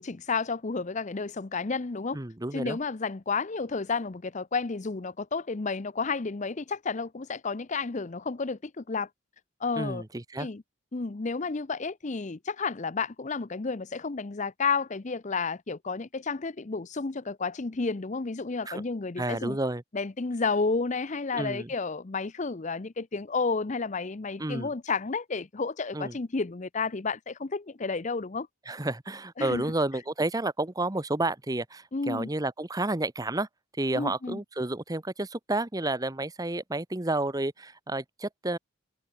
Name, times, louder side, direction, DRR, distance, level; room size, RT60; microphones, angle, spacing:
voice 1, 0.0-2.2 2.5-9.1 9.6-10.0 10.4-10.6 10.9-19.6 19.9-28.5 29.4-29.7 31.9-32.3 33.9-34.4, left 4 dB, 35° left, 0.6 m, -31 dB
voice 2, 2.1-2.8 9.8-10.5 18.7-18.8 19.2-19.8 21.3-21.7 24.4-24.7 25.9-26.1 28.7-33.5 33.8-38.6, right 2 dB, 15° right, 0.9 m, -30 dB
head